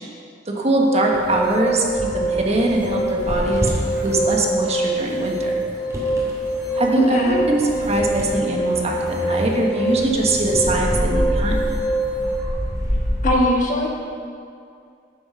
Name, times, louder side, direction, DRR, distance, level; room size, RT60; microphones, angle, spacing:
voice 1, 0.5-1.8 2.1-3.7 4.0-5.5 6.7-11.6, right 2 dB, 35° right, -1 dB, 1.4 m, -22 dB
sound 1, 0.8-12.5, right 1 dB, 30° left, 1.4 m, -25 dB
sound 2, 1.1-13.3, equal, 20° right, 2.5 m, -28 dB
voice 2, 7.0-7.4 13.2-13.9, left 1 dB, 45° left, -1 dB, 1.5 m, -20 dB
9.9 x 7.1 x 6.8 m, 2.4 s
head